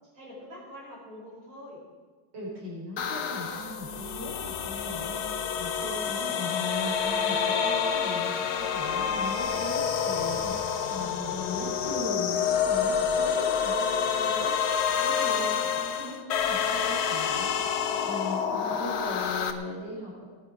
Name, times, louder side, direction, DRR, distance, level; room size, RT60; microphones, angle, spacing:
voice 1, 0.1-1.8 10.8-11.4 14.3-14.9, equal, 80° right, -5 dB, 6.5 m, -45 dB
voice 2, 2.3-14.5 15.0-20.2, left 1 dB, 65° right, -4 dB, 5.3 m, -38 dB
sound 1, 3.0-19.5, left 7 dB, 80° left, 1.8 m, -28 dB
19.5 x 10.0 x 5.0 m, 1.4 s
omnidirectional pair, 2.2 m